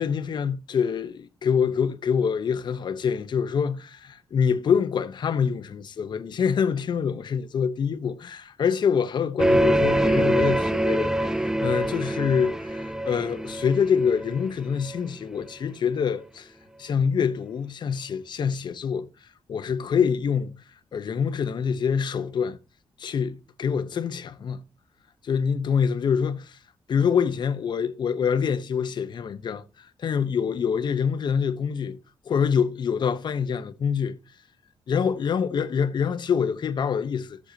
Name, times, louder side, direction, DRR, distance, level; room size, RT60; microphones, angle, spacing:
voice 1, 0.0-16.5 16.8-19.1 19.5-20.6 20.9-22.6 23.0-24.6 25.2-26.6 26.9-32.0 32.2-34.2 34.9-37.4, left 7 dB, 55° left, 1.0 m, -25 dB
sound 1, 9.4-15.0, right 1 dB, 5° right, 0.4 m, -24 dB
16.0 x 6.7 x 2.9 m
wide cardioid pair, 135°, 9 cm